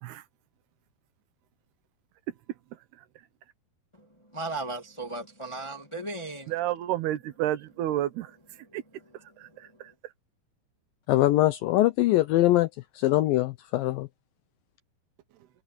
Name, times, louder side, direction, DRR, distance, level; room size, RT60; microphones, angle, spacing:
voice 1, 2.3-3.3 6.5-8.8 9.1-10.1 15.3-15.5, right 13 dB, 70° right, 3.0 m, -32 dB
voice 2, 4.3-6.5, right 2 dB, 30° left, 0.5 m, -35 dB
voice 3, 11.1-12.7 13.0-14.1, left 15 dB, 90° left, 2.0 m, -22 dB
omnidirectional pair, 5.0 m